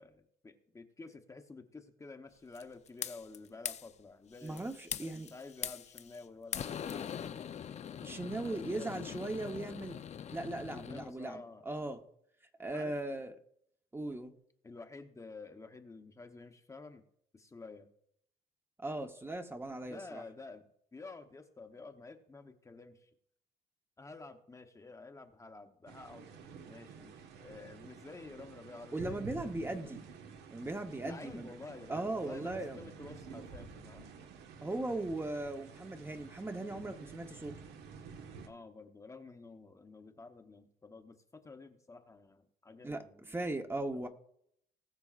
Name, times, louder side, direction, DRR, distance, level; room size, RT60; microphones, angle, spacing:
voice 1, 0.0-4.7 5.0-7.5 8.4-9.1 10.7-11.7 12.7-13.0 14.6-17.0 17.3-17.9 19.8-23.1 24.0-26.3 26.7-30.0 31.0-34.1 38.5-43.4 43.9-44.0, left 3 dB, 20° left, 0.9 m, -51 dB
sound 1, 2.5-3.4 3.6-3.9 4.4-6.2 6.5-11.1, left 8 dB, 40° left, 0.6 m, -42 dB
voice 2, 4.4-5.3 8.0-10.0 10.3-12.0 12.6-13.3 13.9-14.3 18.8-20.2 28.9-30.0 30.5-31.5 31.9-32.8 34.6-37.5 42.8-43.0 43.3-44.1, right 2 dB, 15° right, 1.0 m, -38 dB
sound 2, 25.9-38.5, right 5 dB, 80° right, 1.4 m, -50 dB
20.0 x 6.8 x 2.5 m
cardioid pair, 110°, 17 cm